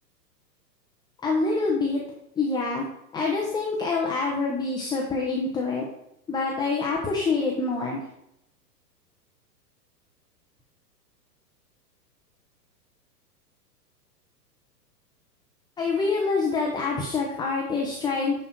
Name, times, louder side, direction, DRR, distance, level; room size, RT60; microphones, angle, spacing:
voice 1, 1.2-2.0 2.4-2.9 3.1-5.9 6.3-8.0 15.8-18.4, left 3 dB, 10° left, -2 dB, 0.9 m, -26 dB
10.5 x 4.4 x 4.5 m, 0.79 s
figure-of-eight pair, 105°, 50 cm